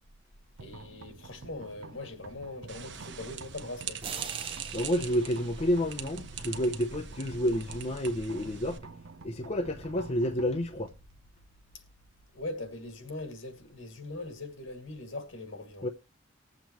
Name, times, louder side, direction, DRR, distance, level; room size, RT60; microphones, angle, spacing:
voice 1, 0.6-4.0 12.3-15.9, left 2 dB, 75° left, 2.2 m, -41 dB
sound 1, 0.6-14.4, right 3 dB, 85° right, 0.7 m, -50 dB
sound 2, 2.7-8.8, right 7 dB, 60° right, 1.0 m, -42 dB
sound 3, 4.0-6.9, right 6 dB, 25° right, 0.8 m, -45 dB
voice 2, 4.7-8.8 9.2-10.9 15.8-15.9, equal, 30° left, 0.7 m, -30 dB
20.5 x 7.4 x 3.0 m
head